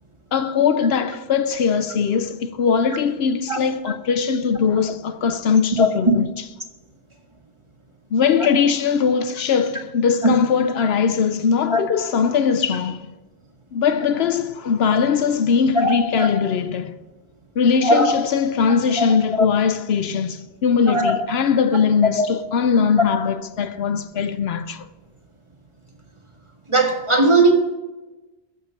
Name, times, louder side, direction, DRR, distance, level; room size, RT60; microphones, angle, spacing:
voice 1, 0.3-6.3 8.1-13.1 13.7-17.0 17.6-24.9, left 6 dB, 75° left, 0.9 m, -20 dB
voice 2, 15.8-16.3 17.8-18.1 19.0-19.1 19.4-19.5 20.9-21.1 22.2-22.3 26.7-27.5, right 1 dB, 30° right, 1.8 m, -18 dB
14.0 x 7.4 x 5.9 m
omnidirectional pair, 1.1 m